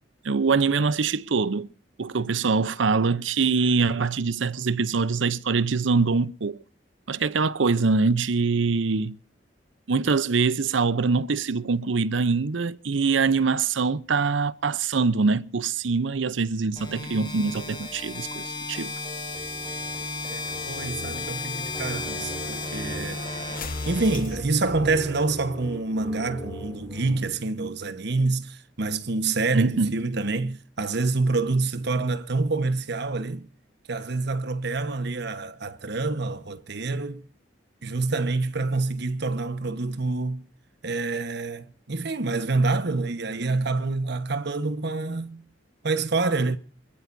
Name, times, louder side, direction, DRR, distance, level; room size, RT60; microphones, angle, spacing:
voice 1, 0.2-1.7 2.0-6.6 7.1-9.2 9.9-18.9 29.5-29.9, right 4 dB, 90° right, 0.7 m, -24 dB
sound 1, 16.8-24.8, left 3 dB, 25° left, 6.2 m, -34 dB
sound 2, 18.7-25.5, left 3 dB, 50° left, 1.3 m, -41 dB
sound 3, 19.3-27.2, right 1 dB, 10° left, 6.6 m, -41 dB
voice 2, 20.0-23.2 23.9-33.5 33.9-37.2 37.8-40.5 40.8-45.4 45.8-46.6, right 3 dB, 65° right, 1.2 m, -27 dB
25.5 x 14.5 x 2.7 m
head